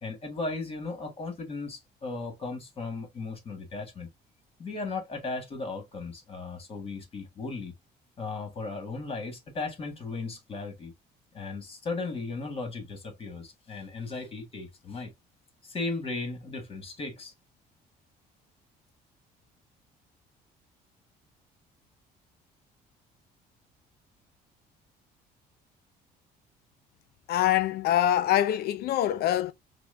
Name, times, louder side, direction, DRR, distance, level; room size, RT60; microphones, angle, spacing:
voice 1, 0.0-4.1 4.6-7.7 8.2-10.9 11.3-15.1 15.6-17.3, left 3 dB, 35° left, 1.6 m, -36 dB
voice 2, 27.3-29.5, left 12 dB, 70° left, 0.5 m, -24 dB
5.9 x 2.1 x 2.5 m
cardioid pair, 110°, 17 cm